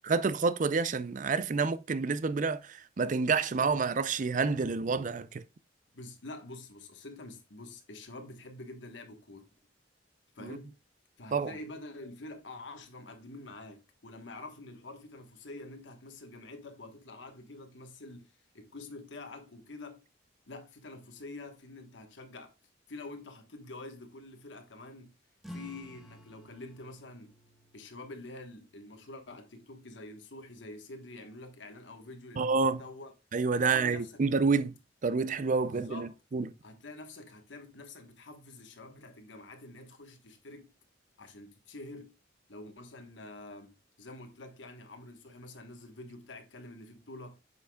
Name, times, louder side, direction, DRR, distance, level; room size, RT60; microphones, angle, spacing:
voice 1, 0.1-5.4 10.4-10.6 11.3-11.5 32.4-32.8 33.3-34.7 35.0-36.5, right 4 dB, 45° right, 0.5 m, -28 dB
voice 2, 5.9-9.5 10.3-10.7 11.2-20.0 20.5-22.5 22.9-25.1 25.5-27.3 27.7-33.1 33.5-34.2 35.6-36.2 36.6-40.7 41.2-42.1 42.5-47.4, left 2 dB, 90° left, 1.3 m, -47 dB
sound 1, 25.4-30.5, equal, ahead, 1.2 m, -53 dB
7.9 x 5.8 x 2.3 m
head